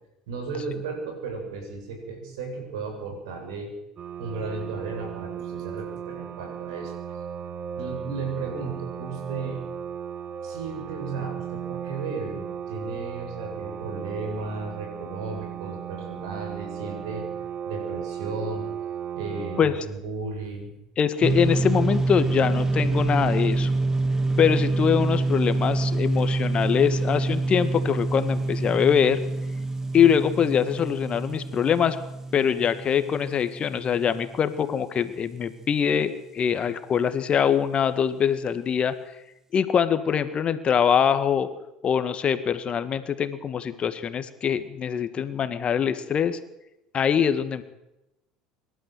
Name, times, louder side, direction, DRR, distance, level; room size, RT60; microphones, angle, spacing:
voice 1, 0.3-3.7 4.2-6.9 7.8-9.6 10.4-17.3 17.7-18.7 19.1-20.7, right 4 dB, 75° right, 3 dB, 7.6 m, -34 dB
sound 1, 4.0-19.6, right 8 dB, 40° right, 1.6 m, -36 dB
voice 2, 21.0-23.7 24.4-29.2 29.9-32.0 32.3-39.0 39.5-41.5 41.8-46.4 46.9-47.6, left 8 dB, 40° left, 11 dB, 1.9 m, -23 dB
sound 2, 21.2-34.7, right 2 dB, 20° right, 2.3 m, -26 dB
25.5 x 12.5 x 8.1 m, 0.89 s
hypercardioid pair, 70°, 3 cm